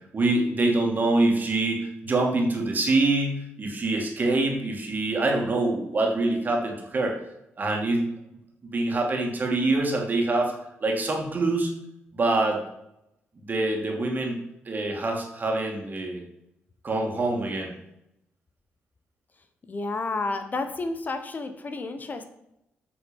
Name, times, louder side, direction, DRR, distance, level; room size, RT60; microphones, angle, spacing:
voice 1, 0.1-7.2 7.6-8.0 8.6-10.5 10.8-11.7 12.1-12.6 13.4-14.4 14.7-16.2 16.8-17.7, right 2 dB, 40° right, 1 dB, 2.5 m, -25 dB
voice 2, 19.6-22.2, left 3 dB, 40° left, 8 dB, 1.0 m, -31 dB
8.5 x 6.3 x 5.4 m, 0.82 s
cardioid pair, 75°, 5 cm